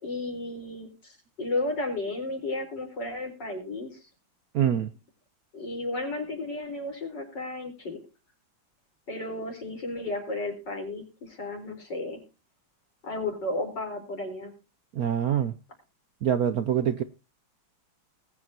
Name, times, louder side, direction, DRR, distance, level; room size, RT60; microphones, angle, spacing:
voice 1, 0.0-4.1 5.5-8.0 9.1-12.2 13.0-14.5, left 2 dB, 60° left, 4.9 m, -33 dB
voice 2, 4.5-4.9 14.9-15.5 16.2-17.0, right 9 dB, 65° right, 1.0 m, -25 dB
20.5 x 8.6 x 2.8 m
omnidirectional pair, 2.2 m